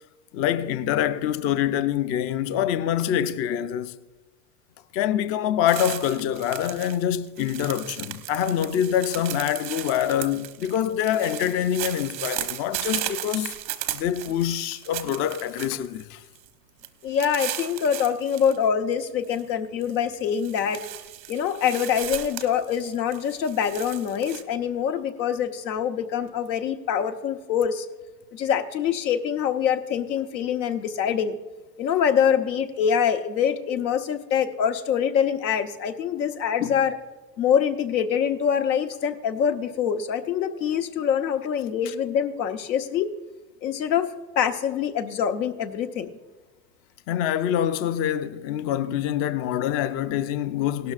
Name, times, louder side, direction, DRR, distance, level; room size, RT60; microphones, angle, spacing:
voice 1, 0.3-4.0 4.9-13.5 13.9-16.2 41.8-41.9 47.1-50.9, left 10 dB, 30° left, 0.4 m, -25 dB
sound 1, 5.7-7.0 7.2-16.0 16.4-16.5 16.8-18.6 18.9-19.4 19.8-24.4, right 13 dB, 85° right, 1.0 m, -36 dB
voice 2, 17.0-20.8 21.3-27.9 28.3-31.4 31.8-37.0 37.4-43.1 43.6-46.1, left 8 dB, 85° left, 1.1 m, -25 dB
17.0 x 12.5 x 2.5 m
hypercardioid pair, 105°, 50 cm